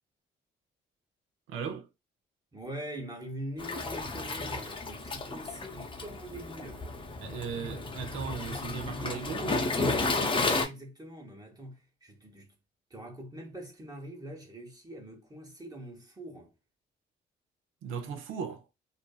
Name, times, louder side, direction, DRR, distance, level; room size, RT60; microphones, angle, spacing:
voice 1, 1.5-1.9 7.2-10.0 17.8-18.7, right 6 dB, 85° right, 0.6 m, -38 dB
voice 2, 2.5-6.9 10.5-12.5 12.9-16.5, right 1 dB, 20° right, 1.0 m, -43 dB
Waves surf, 3.6-10.6, left 3 dB, 25° left, 0.6 m, -32 dB
2.5 x 2.5 x 2.3 m
cardioid pair, 90°, 20 cm